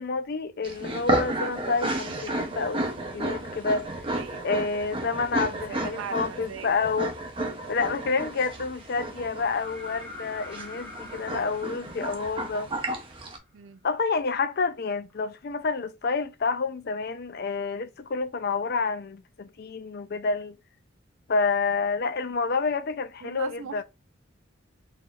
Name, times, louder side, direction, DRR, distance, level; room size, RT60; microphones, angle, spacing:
voice 1, 0.0-2.8 3.1-3.9 4.4-7.2 7.7-12.7 13.8-20.6 21.3-23.8, left 4 dB, 50° left, 0.4 m, -28 dB
sound 1, 0.6-13.4, right 1 dB, 25° right, 0.7 m, -32 dB
voice 2, 4.1-4.5 5.7-6.7 13.5-13.8 23.2-23.8, right 7 dB, 80° right, 0.4 m, -39 dB
sound 2, 9.4-13.2 15.1-15.2, left 1 dB, 10° left, 0.9 m, -44 dB
3.9 x 3.2 x 2.4 m
head